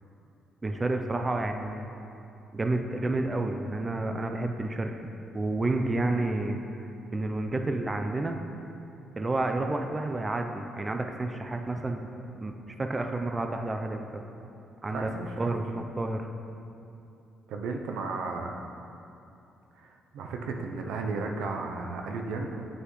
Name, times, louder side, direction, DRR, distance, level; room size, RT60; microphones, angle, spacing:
voice 1, 0.6-1.9 2.5-5.0 5.3-6.6 7.1-8.4 9.2-12.1 12.4-14.2 14.8-15.1 15.4-16.3, right 2 dB, 25° right, 5 dB, 0.4 m, -30 dB
voice 2, 14.9-15.5 17.5-18.6 19.8-22.7, right 3 dB, 85° right, 3 dB, 0.6 m, -34 dB
7.7 x 6.4 x 3.1 m, 2.7 s
cardioid pair, 90°, 0 cm